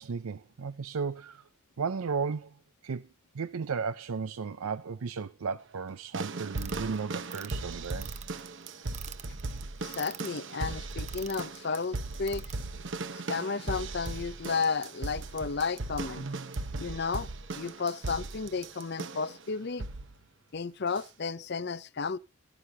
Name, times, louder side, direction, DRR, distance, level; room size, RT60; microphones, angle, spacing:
voice 1, 0.0-1.4 1.8-2.6 2.8-3.0 3.3-8.1, right 5 dB, 85° right, 0.5 m, -34 dB
sound 1, 6.1-19.4 19.8-20.2 21.0-21.1, right 3 dB, 55° right, 0.9 m, -38 dB
sound 2, 6.6-12.5, right 11 dB, 30° right, 0.7 m, -45 dB
voice 2, 9.8-12.4 13.1-16.2 16.8-17.3 17.5-19.9 20.5-22.2, left 4 dB, 50° left, 0.6 m, -33 dB
16.0 x 11.5 x 2.7 m
head